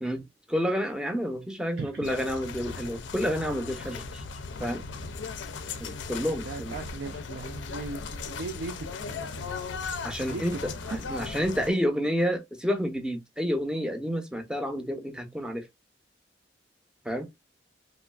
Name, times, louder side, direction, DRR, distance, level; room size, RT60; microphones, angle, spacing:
voice 1, 0.0-4.2 4.6-4.8 5.8-6.8 10.0-15.7 17.0-17.3, equal, 5° right, 0.5 m, -30 dB
sound 1, 2.0-11.7, left 4 dB, 90° left, 0.4 m, -37 dB
voice 2, 6.4-9.4 10.3-11.4, right 4 dB, 65° right, 0.3 m, -39 dB
3.0 x 2.4 x 2.2 m
head